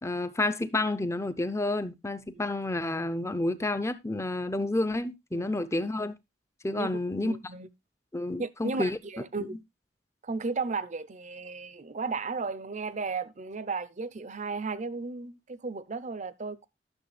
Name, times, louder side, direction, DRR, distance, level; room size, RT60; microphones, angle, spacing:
voice 1, 0.0-6.2 6.6-7.3 8.1-9.0 9.4-9.5, left 2 dB, 15° left, 0.7 m, -30 dB
voice 2, 7.2-7.7 8.4-9.6 10.2-16.7, right 4 dB, 40° right, 0.6 m, -34 dB
12.0 x 6.7 x 3.3 m
head